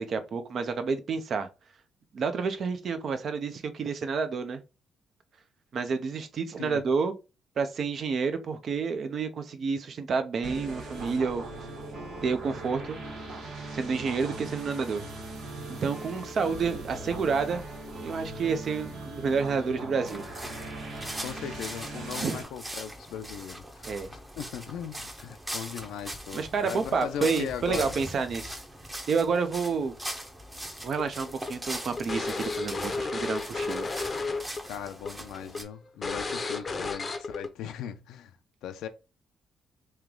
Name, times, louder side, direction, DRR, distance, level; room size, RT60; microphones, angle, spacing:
voice 1, 0.0-1.5 2.1-4.6 5.7-7.1 7.6-11.4 12.2-13.0 13.7-15.0 15.8-17.6 18.0-20.2 22.2-22.4 23.8-24.1 26.3-28.6 29.1-29.9 30.8-33.9, right 5 dB, 55° right, 0.7 m, -29 dB
sound 1, 10.4-22.4, right 2 dB, 85° right, 1.3 m, -40 dB
sound 2, 20.0-35.6, right 1 dB, 15° right, 0.8 m, -41 dB
voice 2, 21.2-28.0 34.6-38.3 38.6-38.9, left 9 dB, 85° left, 0.5 m, -38 dB
sound 3, 31.0-34.6 34.9-35.1 35.5-35.6 36.0-37.5, left 3 dB, 30° left, 0.6 m, -32 dB
3.2 x 3.0 x 3.6 m
cardioid pair, 90°, 0 cm